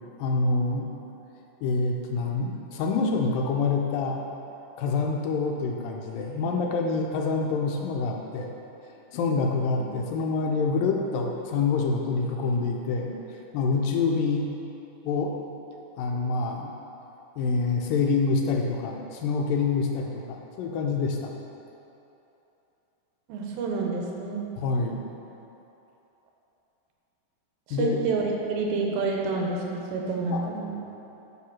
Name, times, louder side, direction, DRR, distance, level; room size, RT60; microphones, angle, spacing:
voice 1, 0.2-0.9 1.6-4.2 4.8-8.5 9.1-13.1 13.5-14.5 15.0-15.3 16.0-16.7 17.4-21.3 24.6-25.0 27.7-28.0 30.3-30.4, left 4 dB, 80° left, 1 dB, 2.3 m, -26 dB
voice 2, 23.3-24.4 27.7-30.7, right 4 dB, 90° right, 0 dB, 2.8 m, -28 dB
8.6 x 4.8 x 6.1 m, 3.0 s
omnidirectional pair, 4.1 m